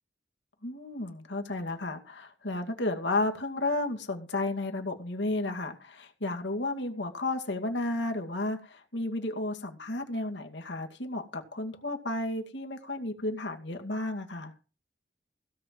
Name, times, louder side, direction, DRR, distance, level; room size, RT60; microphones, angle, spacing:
voice 1, 0.6-14.5, left 2 dB, 75° left, 4 dB, 2.2 m, -33 dB
16.5 x 5.5 x 7.7 m, 0.33 s
head